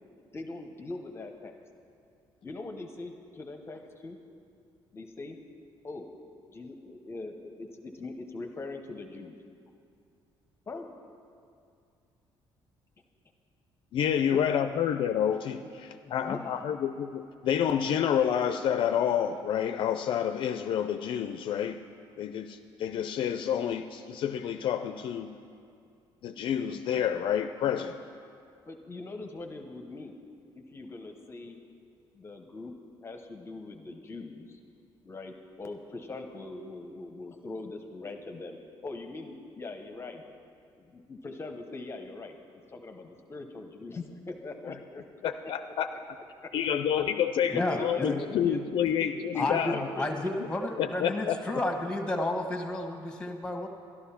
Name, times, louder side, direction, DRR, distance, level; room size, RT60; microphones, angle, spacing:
voice 1, 0.3-1.5 2.4-4.2 4.9-5.4 5.8-6.1 6.5-9.3 10.7-10.9 14.2-14.5 16.0-16.6 28.7-30.2 30.5-31.6 32.1-32.7 33.0-34.6 35.0-40.2 40.8-42.3 42.7-45.0 45.4-45.5 45.9-46.0 46.4-46.5 47.6-50.3, left 2 dB, 25° left, 5 dB, 0.8 m, -41 dB
voice 2, 13.9-21.8 22.2-25.4 26.2-28.0 45.2-45.9 46.5-49.8 50.8-51.4, left 9 dB, 60° left, 9 dB, 0.4 m, -29 dB
voice 3, 47.5-48.2 49.3-53.7, left 1 dB, 10° left, 4 dB, 1.3 m, -31 dB
12.0 x 12.0 x 5.8 m, 2.4 s
cardioid pair, 135°, 10 cm